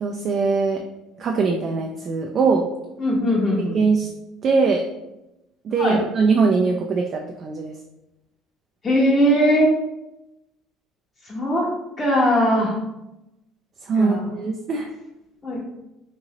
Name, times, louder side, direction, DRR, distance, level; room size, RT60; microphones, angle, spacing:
voice 1, 0.0-0.8 1.2-2.6 3.7-4.1 4.4-4.8 5.6-7.7 13.9-14.9, right 4 dB, 50° right, 2 dB, 0.3 m, -21 dB
voice 2, 3.0-3.8 5.8-6.0 8.8-9.7 11.2-11.7 12.0-12.7 13.9-14.3 15.4-15.6, equal, 25° left, -5 dB, 0.7 m, -20 dB
2.9 x 2.7 x 2.8 m, 0.92 s
hypercardioid pair, 65°, 0 cm